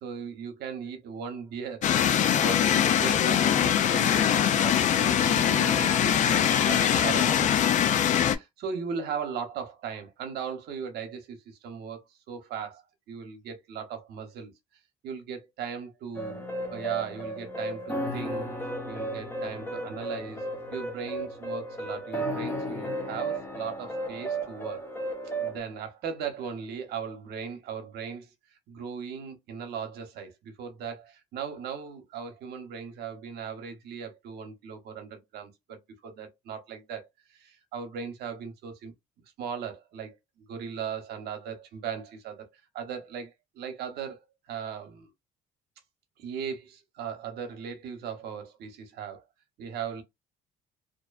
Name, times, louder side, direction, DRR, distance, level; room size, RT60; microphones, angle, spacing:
voice 1, 0.0-1.8 2.2-7.7 8.1-14.5 15.0-18.5 18.9-24.8 25.4-38.9 39.4-45.1 46.2-49.2 49.6-50.0, right 6 dB, 75° right, 0.8 m, -38 dB
sound 1, 1.8-8.4, left 9 dB, 45° left, 0.4 m, -23 dB
sound 2, 16.2-25.6, right 1 dB, 10° left, 0.7 m, -34 dB
2.5 x 2.1 x 2.3 m
cardioid pair, 110°, 17 cm